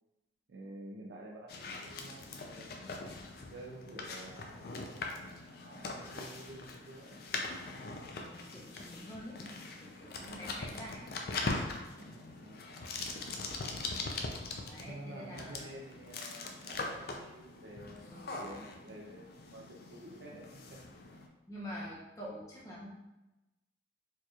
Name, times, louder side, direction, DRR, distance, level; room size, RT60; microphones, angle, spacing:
voice 1, 0.5-2.9 3.5-7.3 9.2-9.4 10.1-10.4 11.8-12.7 13.2-13.3 14.8-20.8, right 1 dB, 70° right, -2 dB, 0.4 m, -50 dB
sound 1, 1.5-21.3, left 3 dB, 50° left, 0.4 m, -42 dB
voice 2, 8.2-11.1 14.7-15.6 18.1-18.6 21.5-22.9, equal, 15° left, -6 dB, 0.8 m, -47 dB
4.6 x 2.9 x 2.4 m, 0.98 s
head